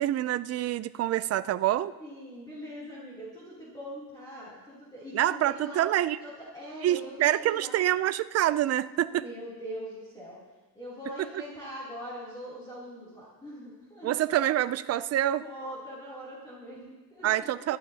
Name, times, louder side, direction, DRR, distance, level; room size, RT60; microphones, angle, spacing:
voice 1, 0.0-1.9 5.1-6.2 6.8-9.2 14.0-15.4 17.2-17.8, right 13 dB, 45° right, 13 dB, 0.4 m, -26 dB
voice 2, 2.0-5.8 6.2-7.7 9.1-10.4 10.7-14.1 15.4-17.5, equal, 10° left, -9 dB, 3.0 m, -42 dB
27.0 x 12.0 x 2.8 m, 1.3 s
cardioid pair, 175°, 37 cm